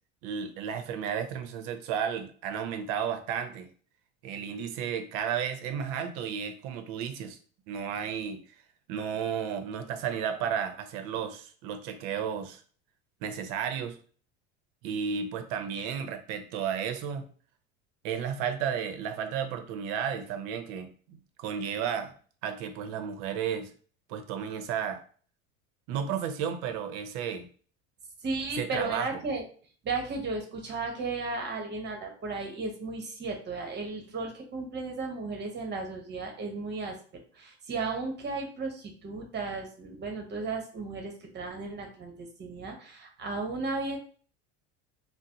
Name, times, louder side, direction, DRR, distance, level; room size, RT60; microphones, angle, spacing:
voice 1, 0.2-3.7 4.2-7.4 7.7-8.4 8.9-12.6 13.2-14.0 14.8-17.3 18.0-22.1 22.4-23.7 24.1-25.0 25.9-27.5 28.6-29.2, right 7 dB, 60° right, 8 dB, 0.7 m, -33 dB
voice 2, 28.2-29.4 29.8-44.0, right 3 dB, 30° right, 2 dB, 0.9 m, -35 dB
3.9 x 2.0 x 2.8 m, 0.43 s
supercardioid pair, 120°, 33 cm